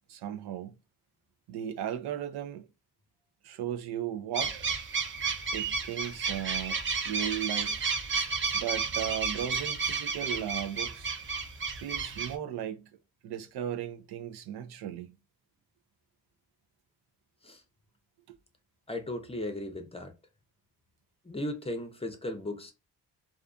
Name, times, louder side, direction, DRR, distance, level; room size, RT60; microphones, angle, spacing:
voice 1, 0.1-0.7 1.5-2.7 3.4-4.6 5.5-6.8 7.1-7.8 8.5-11.1 11.7-12.8 13.2-15.2 18.3-18.4, right 10 dB, 85° right, 0.6 m, -36 dB
sound 1, 4.3-12.3, right 5 dB, 30° right, 0.6 m, -32 dB
voice 2, 18.9-20.1 21.2-22.7, left 1 dB, 15° left, 0.5 m, -36 dB
2.4 x 2.4 x 2.4 m
cardioid pair, 90°, 37 cm